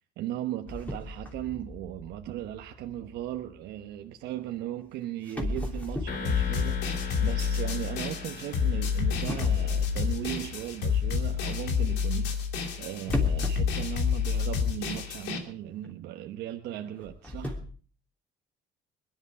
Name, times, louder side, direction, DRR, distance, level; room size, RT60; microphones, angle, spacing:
voice 1, 0.2-6.8 7.2-12.4 12.8-17.6, right 12 dB, 85° right, 1.1 m, -37 dB
sound 1, 0.7-3.8 4.8-4.9 5.3-8.6 9.3-11.1 13.0-14.8 15.1-15.2 15.8-15.9 16.9-17.6, left 1 dB, 10° left, 3.2 m, -37 dB
sound 2, 6.1-11.0, left 4 dB, 65° left, 2.4 m, -42 dB
sound 3, 6.2-15.4, left 7 dB, 90° left, 2.7 m, -28 dB
22.0 x 11.0 x 4.8 m
cardioid pair, 110°, 17 cm